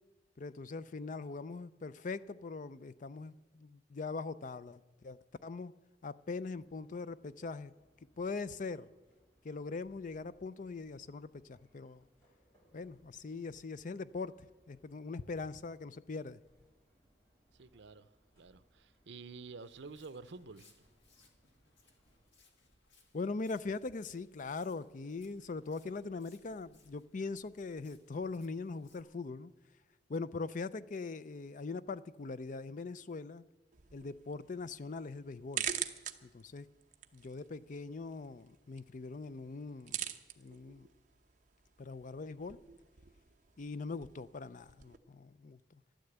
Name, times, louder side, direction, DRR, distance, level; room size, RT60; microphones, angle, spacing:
voice 1, 0.4-5.7 6.0-7.7 8.2-8.9 9.4-12.0 12.7-16.4 23.1-29.5 30.1-33.4 33.9-35.7 36.2-36.7 37.1-40.0 40.4-40.9 41.8-42.6 43.6-45.8, left 4 dB, 45° left, 0.5 m, -41 dB
sound 1, 6.2-22.3, right 1 dB, 15° left, 6.2 m, -72 dB
voice 2, 17.5-18.1 18.4-20.7, right 4 dB, 80° right, 0.7 m, -49 dB
Walk footsteps, 19.6-29.0, left 3 dB, 75° left, 2.2 m, -68 dB
sound 2, 33.7-45.0, right 10 dB, 45° right, 0.8 m, -45 dB
13.0 x 11.5 x 8.0 m
head